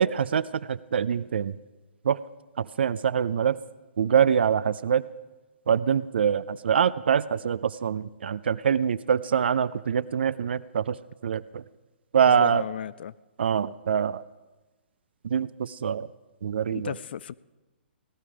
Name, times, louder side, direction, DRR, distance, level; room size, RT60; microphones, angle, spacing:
voice 1, 0.0-1.5 2.0-2.2 2.6-3.6 4.0-5.0 5.7-11.0 11.2-11.6 12.1-12.6 13.4-14.2 15.2-16.1 16.4-16.9, right 7 dB, 65° right, 17 dB, 0.5 m, -24 dB
voice 2, 12.3-13.1 16.7-17.3, left 9 dB, 55° left, 20 dB, 0.4 m, -35 dB
17.5 x 12.0 x 4.9 m, 1.1 s
figure-of-eight pair, 125°, 6 cm